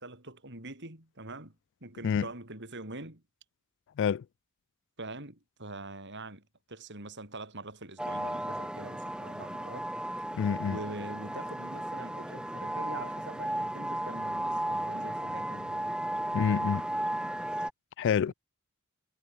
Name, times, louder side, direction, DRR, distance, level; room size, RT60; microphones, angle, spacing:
voice 1, 0.0-1.5 1.8-3.2 5.0-9.9 10.7-16.0, right 2 dB, 55° right, 6.6 m, -44 dB
sound 1, 8.0-17.7, right 1 dB, 5° right, 1.7 m, -34 dB
voice 2, 10.3-10.8 16.3-16.9 18.0-18.3, left 7 dB, 55° left, 0.3 m, -27 dB
head